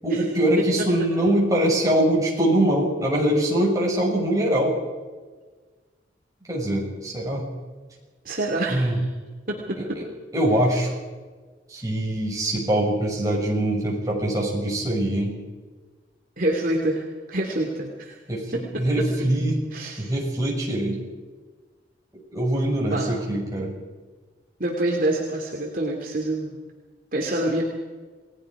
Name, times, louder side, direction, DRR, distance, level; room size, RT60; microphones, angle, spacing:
voice 1, 0.0-4.7 6.5-7.5 8.7-9.0 9.8-10.1 10.3-10.9 11.7-15.3 18.3-19.6 20.0-21.0 22.3-23.8, right 1 dB, 20° right, -3 dB, 6.6 m, -23 dB
voice 2, 8.2-9.1 9.5-9.6 16.4-18.2 18.5-18.6 19.7-20.1 22.8-23.1 24.6-26.5 27.1-27.6, right 1 dB, 45° right, -1 dB, 2.9 m, -26 dB
29.5 x 19.5 x 5.0 m, 1.4 s
head